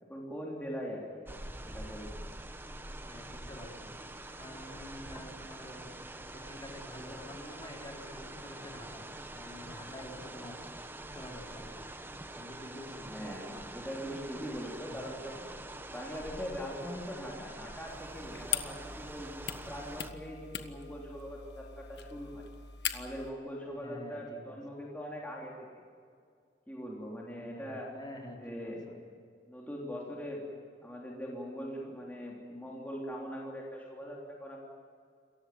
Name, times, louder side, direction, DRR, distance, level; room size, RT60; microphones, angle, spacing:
voice 1, 0.1-1.2 1.6-2.1 13.0-15.5 15.9-19.3 19.7-22.5 22.9-25.7 26.7-28.0 28.4-28.8 29.5-30.5 30.8-34.6, equal, 10° left, -3 dB, 3.3 m, -41 dB
sound 1, 1.3-20.1, right 1 dB, 15° right, 1.2 m, -45 dB
voice 2, 3.1-4.0 4.4-5.9 6.3-9.0 9.3-10.6 11.1-11.8 12.4-13.1 14.9-15.0 23.7-24.6 27.4-29.0, left 1 dB, 25° left, 0 dB, 3.8 m, -48 dB
sound 2, 17.9-23.3, left 9 dB, 70° left, 1.4 m, -40 dB
28.0 x 15.5 x 9.5 m, 2.2 s
head